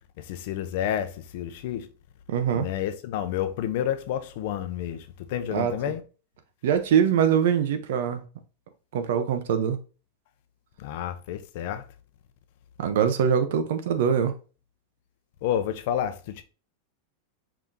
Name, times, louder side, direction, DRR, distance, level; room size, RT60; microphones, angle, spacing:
voice 1, 0.2-1.9 2.5-6.0 10.8-11.8 15.4-16.4, left 10 dB, 60° left, 0.6 m, -30 dB
voice 2, 2.3-2.7 5.5-5.7 6.6-8.2 8.9-9.8 12.8-14.3, right 8 dB, 70° right, 0.7 m, -23 dB
4.8 x 3.6 x 2.7 m
supercardioid pair, 150°, 0 cm